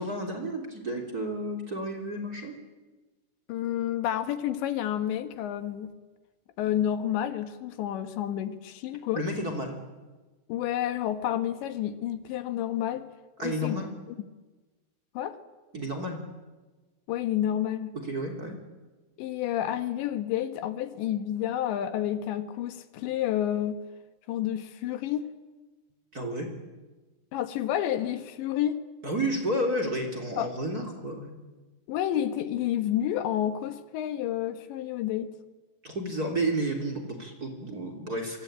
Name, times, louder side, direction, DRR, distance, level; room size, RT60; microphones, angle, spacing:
voice 1, 0.0-2.5 9.1-9.7 13.4-13.9 15.7-16.2 18.0-18.5 26.1-26.5 29.0-31.3 35.8-38.4, right 1 dB, 25° right, 5 dB, 3.0 m, -31 dB
voice 2, 3.5-5.9 6.6-9.2 10.5-13.1 13.4-13.8 15.2-15.4 17.1-18.0 19.2-23.8 24.3-25.2 27.3-28.8 30.4-30.5 31.9-35.3, left 11 dB, 85° left, 10 dB, 3.7 m, -30 dB
26.5 x 24.5 x 8.9 m, 1.2 s
omnidirectional pair, 5.0 m